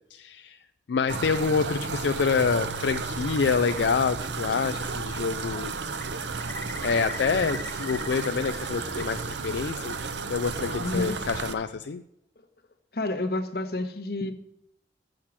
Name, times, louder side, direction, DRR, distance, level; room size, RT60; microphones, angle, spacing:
voice 1, 0.1-0.6 0.9-5.7 6.8-10.0 10.3-12.0, left 5 dB, 75° left, 8 dB, 0.4 m, -27 dB
sound 1, 1.1-11.5, right 4 dB, 80° right, 0.7 m, -33 dB
Bird, 4.5-5.1 5.3-9.0 9.3-10.2, left 2 dB, 15° left, 1.1 m, -42 dB
voice 2, 10.8-11.1 12.9-14.3, left 2 dB, 55° left, 6 dB, 1.1 m, -29 dB
7.4 x 6.4 x 7.2 m, 0.82 s
head